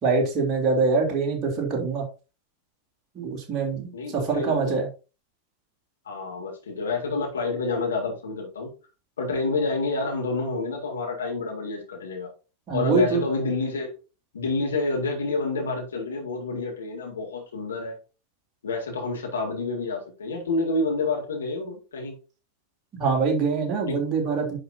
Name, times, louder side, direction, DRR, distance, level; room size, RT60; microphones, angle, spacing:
voice 1, 0.0-2.1 3.2-4.9 12.7-13.2 23.0-24.6, right 4 dB, 30° right, 3.5 m, -24 dB
voice 2, 3.9-4.8 6.1-8.7 9.2-12.3 12.7-13.9 14.3-18.0 18.6-22.1 23.9-24.0, left 3 dB, 70° left, 3.6 m, -28 dB
11.0 x 5.6 x 2.8 m
figure-of-eight pair, 90°, 0 cm